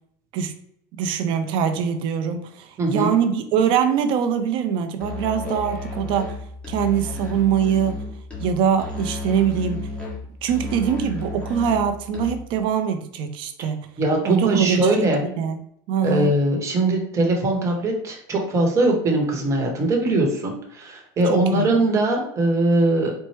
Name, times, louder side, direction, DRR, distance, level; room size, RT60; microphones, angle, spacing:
voice 1, 0.9-6.3 6.7-8.0 8.4-9.9 10.4-13.8 14.2-14.9 15.2-15.6 15.9-16.3 21.3-21.7, right 8 dB, 50° right, 7 dB, 0.6 m, -23 dB
voice 2, 2.8-3.1 14.0-15.2 16.0-23.1, right 2 dB, 25° right, 1 dB, 1.0 m, -21 dB
Musical instrument, 5.0-12.6, left 2 dB, 10° left, 1.1 m, -32 dB
4.2 x 2.1 x 3.2 m, 0.71 s
supercardioid pair, 130°, 11 cm